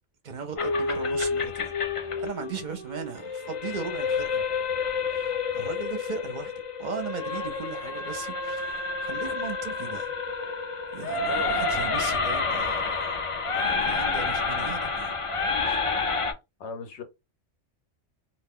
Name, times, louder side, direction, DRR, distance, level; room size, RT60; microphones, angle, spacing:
voice 1, 0.2-1.7 2.2-4.4 5.5-6.5 6.8-8.8 9.0-10.1 10.9-13.1 13.5-15.1 15.7-15.8, right 5 dB, 45° right, 0.7 m, -37 dB
sound 1, 0.6-16.3, left 4 dB, 45° left, 0.4 m, -29 dB
voice 2, 11.3-11.6 16.6-17.0, left 5 dB, 70° left, 0.9 m, -37 dB
2.4 x 2.3 x 3.5 m
omnidirectional pair, 1.3 m